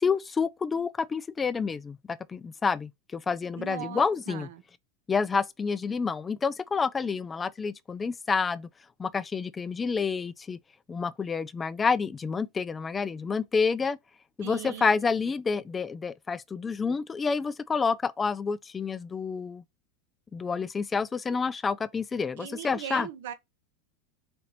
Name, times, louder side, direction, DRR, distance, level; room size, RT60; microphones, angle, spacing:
voice 1, 0.0-4.5 5.1-8.7 9.0-10.6 10.9-14.0 14.4-19.6 20.3-23.1, left 5 dB, 20° left, 0.3 m, -29 dB
voice 2, 3.6-4.6 14.4-14.9 22.4-23.3, right 10 dB, 75° right, 0.8 m, -39 dB
4.2 x 2.8 x 4.1 m
supercardioid pair, 115°, 0 cm